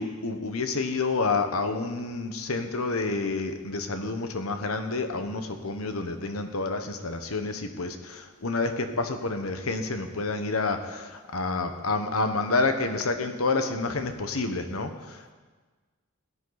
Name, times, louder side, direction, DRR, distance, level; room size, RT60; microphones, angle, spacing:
voice 1, 0.0-15.3, left 3 dB, 85° left, 7 dB, 1.2 m, -29 dB
17.5 x 11.0 x 4.1 m, 1.4 s
head